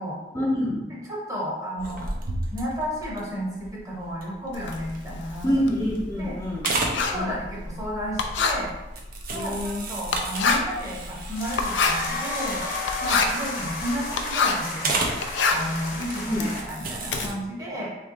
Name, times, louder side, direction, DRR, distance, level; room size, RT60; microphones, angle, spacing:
voice 1, 0.3-0.8 5.4-6.7 7.1-7.3 9.3-9.8 16.3-16.5, equal, 15° left, -6 dB, 0.6 m, -26 dB
voice 2, 0.9-2.1 2.5-5.5 6.2-6.4 6.8-8.7 9.3-12.6 13.0-15.1 15.5-17.9, equal, 20° right, -5 dB, 1.0 m, -32 dB
sound 1, 1.8-5.4 5.9-6.3 6.5-7.0 8.1-8.5 8.9-11.8 12.3-12.4 12.6-12.9 13.2-13.8 14.8-15.2 15.9-16.1 16.5-17.3, right 2 dB, 50° right, 0.6 m, -32 dB
Writing, 4.5-14.7 15.1-17.3, left 4 dB, 90° left, 0.4 m, -27 dB
sound 2, 11.3-16.6, left 2 dB, 50° left, 0.9 m, -32 dB
3.3 x 3.0 x 3.8 m, 1.1 s
head